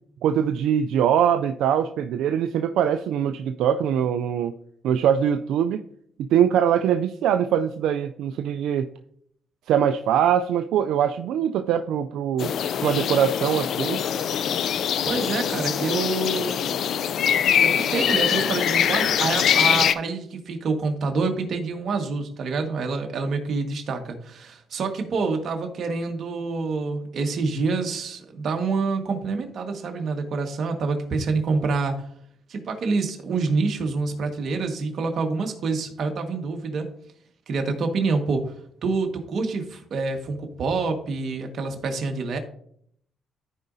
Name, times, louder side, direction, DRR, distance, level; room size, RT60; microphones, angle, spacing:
voice 1, 0.2-4.5 4.8-5.8 6.2-8.9 9.7-12.5 12.8-14.0, right 9 dB, 85° right, 8 dB, 0.4 m, -22 dB
sound 1, 12.4-19.9, left 9 dB, 70° left, 0.4 m, -23 dB
voice 2, 15.1-16.8 17.6-32.0 32.5-36.9 37.5-38.5 38.8-42.4, right 4 dB, 60° right, 4 dB, 1.5 m, -27 dB
14.0 x 5.0 x 2.7 m, 0.67 s
cardioid pair, 90°, 0 cm